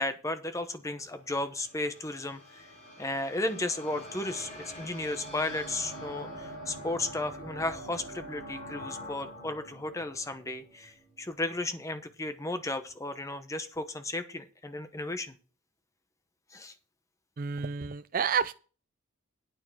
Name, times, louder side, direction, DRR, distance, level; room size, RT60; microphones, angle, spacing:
voice 1, 0.0-2.7 3.0-15.4 16.5-16.7, left 2 dB, 15° left, 10 dB, 0.8 m, -34 dB
sound 1, 0.9-11.3, equal, 30° left, 4.4 m, -45 dB
voice 2, 17.4-18.5, right 6 dB, 40° right, 11 dB, 0.4 m, -29 dB
9.2 x 6.4 x 6.1 m, 0.35 s
head